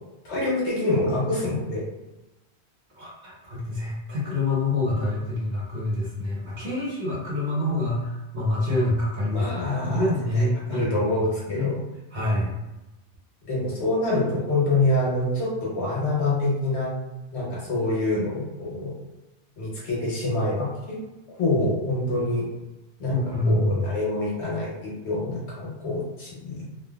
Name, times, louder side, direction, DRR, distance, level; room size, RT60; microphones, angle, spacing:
voice 1, 0.2-1.8 9.3-11.8 13.5-16.9 17.3-18.9 19.6-21.0 21.4-22.4 23.0-23.2 23.4-26.6, left 2 dB, 80° left, -6 dB, 1.3 m, -26 dB
voice 2, 2.9-9.5 9.8-11.7 12.1-12.6 23.1-23.8, left 2 dB, 50° right, -6 dB, 0.9 m, -26 dB
3.1 x 2.2 x 2.3 m, 1.0 s
omnidirectional pair, 1.1 m